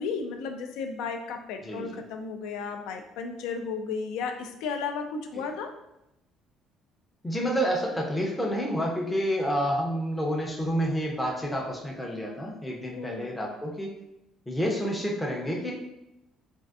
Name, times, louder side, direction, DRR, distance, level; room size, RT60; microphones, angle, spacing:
voice 1, 0.0-5.7 12.9-13.3, left 5 dB, 85° left, 6 dB, 0.4 m, -34 dB
voice 2, 1.6-2.0 5.4-5.5 7.2-13.9 14.5-15.7, equal, 5° left, -2 dB, 0.4 m, -29 dB
3.5 x 2.4 x 2.3 m, 0.86 s
cardioid pair, 160°, 0 cm